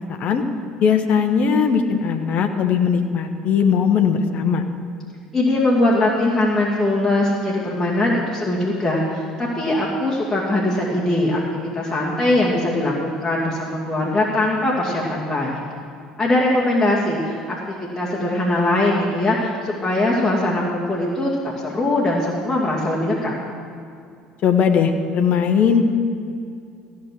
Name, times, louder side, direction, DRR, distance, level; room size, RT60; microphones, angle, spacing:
voice 1, 0.1-0.4 0.8-4.6 24.4-25.8, left 6 dB, 50° left, 5 dB, 1.0 m, -19 dB
voice 2, 5.3-11.4 11.7-15.6 16.2-21.3 21.6-23.3, left 1 dB, 15° left, -6 dB, 2.4 m, -21 dB
15.5 x 6.2 x 7.6 m, 2.4 s
hypercardioid pair, 60°, 3 cm